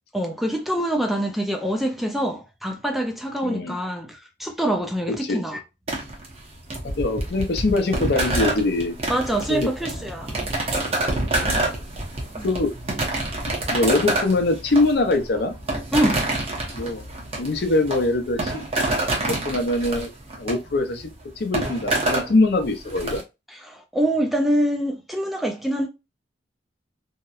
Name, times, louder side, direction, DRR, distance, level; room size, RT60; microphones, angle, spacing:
voice 1, 0.1-5.6 9.1-10.5 12.4-12.5 15.9-16.2 23.5-25.9, right 1 dB, ahead, 0.3 m, -25 dB
voice 2, 3.4-3.8 5.2-5.5 6.8-8.9 9.5-9.7 11.4-11.6 12.4-12.7 13.7-15.5 16.7-17.0 17.4-19.0 19.2-20.1 20.4-21.1 21.4-23.2, left 2 dB, 60° left, 0.5 m, -23 dB
sound 1, 5.9-23.2, right 2 dB, 35° right, 0.7 m, -27 dB
2.8 x 2.0 x 2.3 m
head